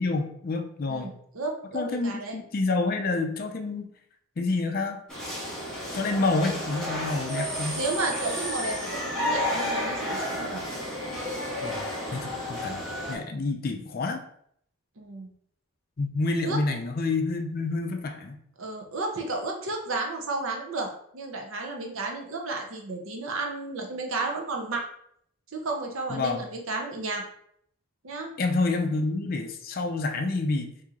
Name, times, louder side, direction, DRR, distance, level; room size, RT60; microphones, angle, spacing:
voice 1, 0.0-1.1 1.7-3.9 4.4-5.0 5.9-7.8 11.6-12.8 13.1-14.2 16.0-18.4 26.1-26.4 28.4-30.7, left 3 dB, 40° left, 5 dB, 0.4 m, -28 dB
voice 2, 0.9-2.4 7.7-10.6 15.0-15.3 16.4-16.6 18.6-24.8 25.5-27.2 28.0-28.3, right 3 dB, 65° right, 1 dB, 0.7 m, -32 dB
sound 1, 5.1-13.2, left 1 dB, 5° left, 1.1 m, -32 dB
2.9 x 2.7 x 3.6 m, 0.67 s
head